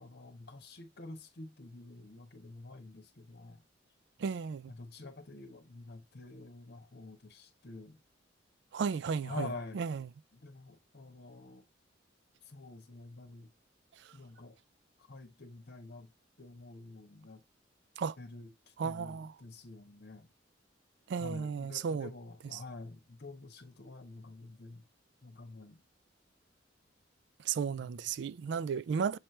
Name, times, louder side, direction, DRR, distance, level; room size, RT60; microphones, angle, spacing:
voice 1, 0.0-3.6 4.7-8.0 9.2-9.8 10.3-11.7 12.4-13.5 14.1-14.6 15.0-16.1 16.4-17.4 18.2-20.3 21.2-24.8 25.2-25.8 27.7-28.0, left 3 dB, 60° left, 1.2 m, -48 dB
voice 2, 4.2-4.7 8.7-9.5 9.7-10.0 14.0-14.1 18.0-18.2 18.8-19.3 21.1-22.1 22.5-22.6 27.4-29.2, right 6 dB, 65° right, 0.3 m, -34 dB
7.4 x 3.3 x 4.3 m
head